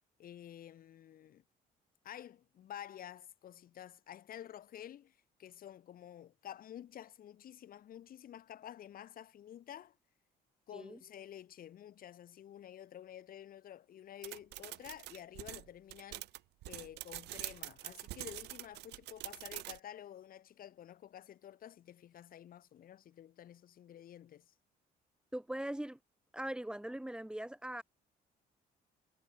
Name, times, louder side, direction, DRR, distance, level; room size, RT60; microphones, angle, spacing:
voice 1, 0.2-1.4 2.0-10.0 10.7-16.3 16.7-24.5, left 11 dB, 60° left, 7.3 m, -51 dB
sound 1, 14.2-19.8, right 18 dB, 85° right, 4.1 m, -45 dB
voice 2, 25.3-26.0 26.3-27.8, right 1 dB, 5° right, 3.7 m, -40 dB
cardioid pair, 110°, 17 cm